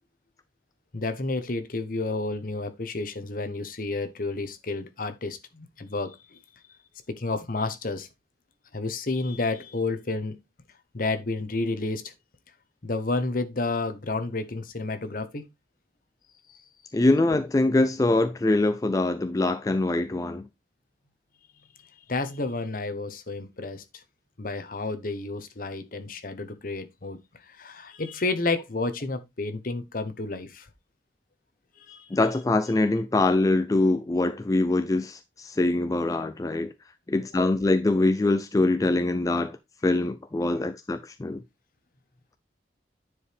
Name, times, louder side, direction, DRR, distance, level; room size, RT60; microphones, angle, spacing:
voice 1, 0.9-6.4 7.1-8.1 8.7-10.4 10.9-12.1 12.8-15.5 16.5-16.6 22.1-23.8 24.4-30.7 31.8-32.1 40.4-40.6, left 3 dB, 50° left, 1.0 m, -31 dB
voice 2, 16.9-20.5 32.1-36.7 37.1-39.6 39.8-41.4, left 2 dB, 20° left, 0.4 m, -23 dB
9.8 x 4.7 x 3.3 m
head